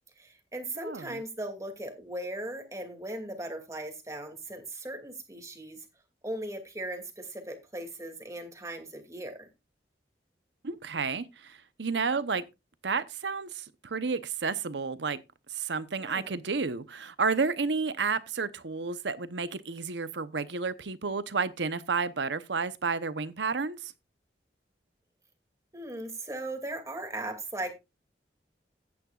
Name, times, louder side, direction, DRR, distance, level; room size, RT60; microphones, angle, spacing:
voice 1, 0.2-5.8 6.2-9.5 16.0-16.4 25.7-27.7, right 1 dB, 20° right, 2.4 m, -38 dB
voice 2, 0.8-1.2 10.6-12.4 12.8-15.2 15.5-23.9, right 4 dB, 85° right, 0.9 m, -31 dB
14.5 x 9.8 x 2.4 m
head